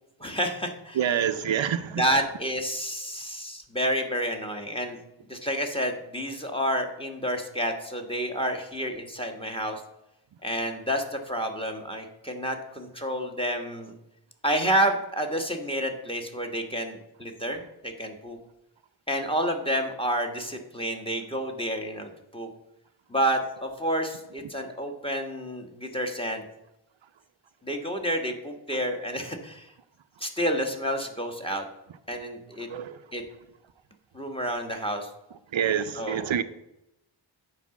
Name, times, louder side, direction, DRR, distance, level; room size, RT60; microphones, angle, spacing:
voice 1, 0.2-1.3 1.9-5.0 5.3-9.8 10.4-13.9 14.4-18.4 19.1-22.5 23.1-26.4 27.6-29.7 30.2-31.6 32.1-32.7 33.1-33.2 34.1-35.1 35.9-36.4, equal, 10° left, 1.4 m, -29 dB
voice 2, 1.0-2.2 32.7-33.0 35.5-36.4, right 8 dB, 70° right, 0.6 m, -27 dB
9.5 x 4.8 x 7.0 m
wide cardioid pair, 75°, 47 cm